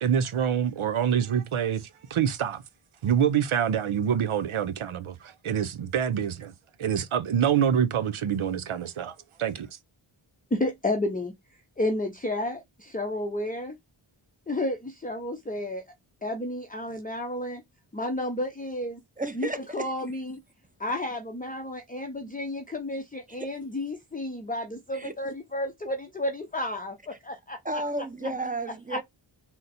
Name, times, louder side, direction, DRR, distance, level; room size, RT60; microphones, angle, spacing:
voice 1, 0.0-2.6 3.0-6.5 6.8-9.7, right 8 dB, 75° right, 0.7 m, -26 dB
voice 2, 10.5-11.3 11.8-13.8 14.5-15.8 16.2-17.6 17.9-19.0 19.3-19.5 19.7-20.4 20.8-27.8 28.2-28.3 28.9-29.0, left 1 dB, 15° left, 0.6 m, -31 dB
voice 3, 19.2-19.9 24.9-25.1 27.6-29.0, right 2 dB, 15° right, 0.9 m, -32 dB
3.9 x 2.2 x 4.1 m
cardioid pair, 40°, 50 cm